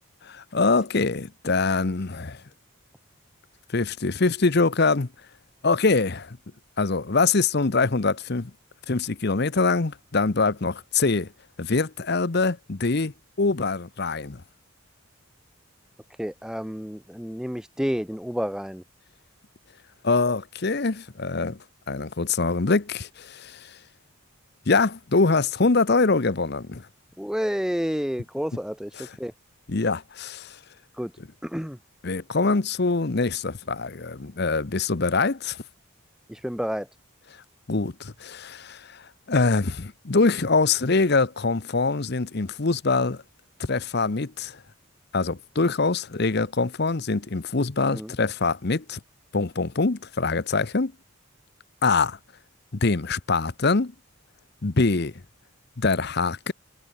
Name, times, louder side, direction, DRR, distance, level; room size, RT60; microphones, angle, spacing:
voice 1, 0.2-2.4 3.7-5.1 5.6-6.4 6.8-8.5 8.9-11.3 11.6-13.1 13.4-14.4 20.0-21.6 21.9-23.8 24.7-26.9 29.0-29.2 29.7-30.6 31.2-31.3 32.0-35.6 37.7-43.2 43.6-44.6 45.1-49.0 49.3-50.9 51.8-52.2 52.8-53.9 54.6-55.1 55.8-56.5, left 3 dB, 50° left, 0.8 m, -24 dB
voice 2, 16.2-18.8 27.2-28.9 29.2-29.3 31.0-31.1 31.4-31.8 36.3-36.9 47.9-48.1, equal, 5° right, 1.0 m, -29 dB
head